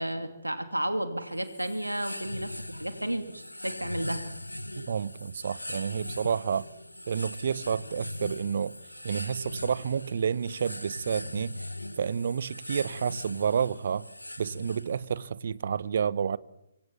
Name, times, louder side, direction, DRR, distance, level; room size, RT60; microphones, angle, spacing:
voice 1, 0.0-4.2, right 1 dB, 85° right, 2.6 m, -32 dB
sound 1, 1.3-15.2, left 1 dB, 85° left, 1.6 m, -40 dB
voice 2, 4.7-6.7 7.1-8.8 9.0-11.6 12.0-14.1 14.4-16.4, right 7 dB, 50° right, 1.1 m, -30 dB
25.5 x 25.0 x 7.3 m
figure-of-eight pair, 135°, 0 cm